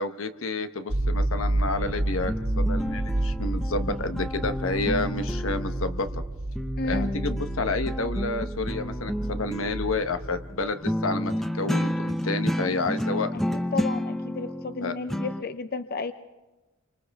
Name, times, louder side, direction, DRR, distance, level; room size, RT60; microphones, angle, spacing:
voice 1, 0.0-6.1 6.9-13.3 14.8-14.9, left 3 dB, 85° left, 9 dB, 1.1 m, -30 dB
sound 1, 0.9-10.7, right 1 dB, 50° right, 1.4 m, -30 dB
sound 2, 1.8-6.3 6.6-15.4, equal, ahead, 0.6 m, -31 dB
voice 2, 6.8-7.1 13.3-16.1, left 4 dB, 50° left, 11 dB, 0.6 m, -33 dB
29.5 x 24.5 x 3.6 m, 1.1 s
head